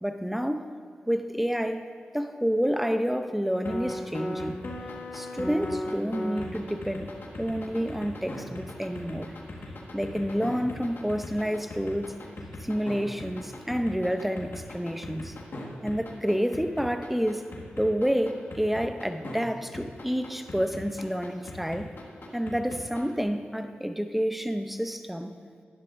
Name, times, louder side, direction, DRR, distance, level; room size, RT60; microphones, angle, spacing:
voice 1, 0.0-0.7 1.1-1.9 2.1-4.6 5.1-9.3 9.9-12.1 12.6-15.4 15.8-17.5 17.8-21.9 22.3-25.3, equal, 5° right, 8 dB, 0.6 m, -29 dB
sound 1, 3.6-19.4 19.7-23.2, left 1 dB, 60° left, 1.6 m, -37 dB
11.0 x 10.5 x 2.6 m, 2.2 s
cardioid pair, 50°, 4 cm